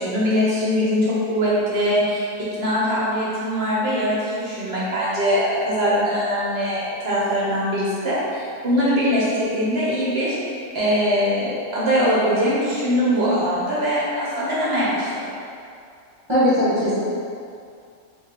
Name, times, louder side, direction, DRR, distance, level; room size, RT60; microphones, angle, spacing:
voice 1, 0.0-2.3 2.6-10.4 10.7-15.1, equal, 55° right, -7 dB, 0.8 m, -22 dB
voice 2, 16.3-17.0, equal, 25° right, -12 dB, 0.8 m, -19 dB
3.0 x 2.6 x 4.0 m, 2.4 s
omnidirectional pair, 1.6 m